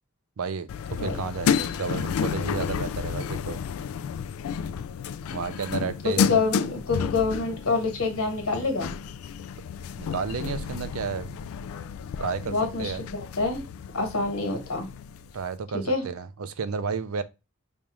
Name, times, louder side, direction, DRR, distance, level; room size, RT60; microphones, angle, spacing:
voice 1, 0.4-3.6 5.3-6.4 10.0-11.4 12.2-12.5 12.8-13.0 15.3-17.2, right 5 dB, 75° right, 0.5 m, -32 dB
sound 1, 0.7-15.5, left 7 dB, 70° left, 0.3 m, -31 dB
voice 2, 5.7-8.9 12.5-13.6 13.9-14.9 15.8-16.0, left 3 dB, 85° left, 1.4 m, -27 dB
5.3 x 2.4 x 3.0 m
head